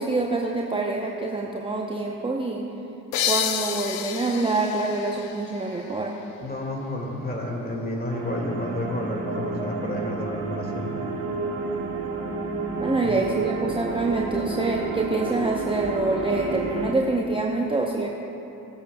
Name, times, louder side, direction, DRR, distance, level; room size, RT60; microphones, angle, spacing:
voice 1, 0.0-2.7 3.3-6.2 12.8-18.2, right 2 dB, 10° right, -1 dB, 0.8 m, -26 dB
sound 1, 3.1-6.5, left 9 dB, 70° left, 0.7 m, -30 dB
voice 2, 6.4-11.1 13.0-13.2, left 1 dB, 20° left, 0 dB, 2.1 m, -31 dB
sound 2, 8.1-16.9, right 3 dB, 55° right, 1.5 m, -30 dB
18.0 x 8.4 x 2.3 m, 3.0 s
hypercardioid pair, 55°, 44 cm